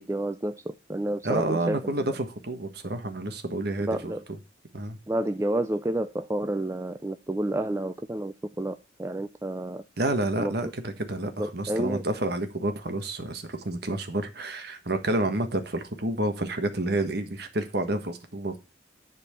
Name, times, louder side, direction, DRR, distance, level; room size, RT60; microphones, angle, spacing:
voice 1, 0.0-1.9 3.8-4.2 5.1-9.8 10.4-10.7 11.4-12.0, right 1 dB, 15° right, 0.4 m, -30 dB
voice 2, 1.2-4.1 4.7-5.0 10.0-18.6, right 1 dB, 55° right, 1.4 m, -29 dB
10.5 x 4.4 x 6.9 m
head